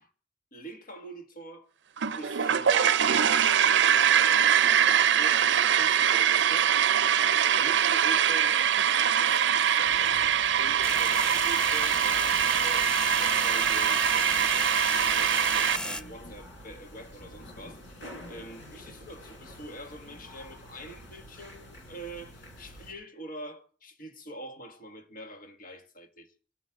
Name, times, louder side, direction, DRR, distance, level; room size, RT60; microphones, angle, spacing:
voice 1, 0.5-1.7 2.2-7.1 7.5-10.2 10.6-12.9 13.2-26.3, right 1 dB, 50° left, 1.7 m, -44 dB
sound 1, 2.0-15.8, right 9 dB, 70° right, 0.5 m, -23 dB
sound 2, 9.8-22.9, equal, 75° left, 4.5 m, -47 dB
sound 3, 10.8-16.0, equal, 5° left, 0.7 m, -34 dB
25.5 x 9.4 x 3.7 m
head